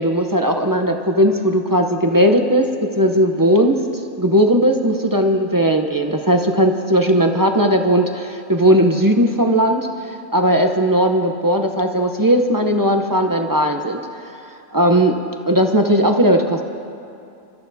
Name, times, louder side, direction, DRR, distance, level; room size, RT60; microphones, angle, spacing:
voice 1, 0.0-2.7 3.0-3.7 4.2-14.3 14.7-15.1 15.5-16.6, equal, 25° right, 4 dB, 0.5 m, -17 dB
27.0 x 14.0 x 2.7 m, 2.6 s
omnidirectional pair, 1.4 m